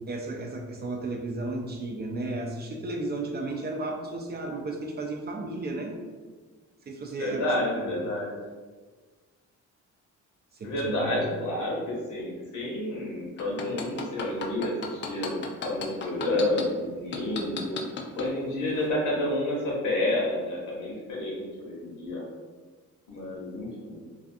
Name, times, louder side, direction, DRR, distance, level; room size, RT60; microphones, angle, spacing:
voice 1, 0.1-5.9 6.9-7.5 7.8-7.9 10.5-11.1, right 2 dB, 35° right, 1 dB, 0.4 m, -34 dB
voice 2, 7.2-8.3 10.6-17.8 18.2-22.2 23.1-24.0, left 1 dB, 75° left, -4 dB, 1.0 m, -30 dB
sound 1, 13.4-16.6 17.1-18.3 18.8-18.9, left 7 dB, 40° left, 0.4 m, -34 dB
2.4 x 2.3 x 2.5 m, 1.4 s
cardioid pair, 90°, 30 cm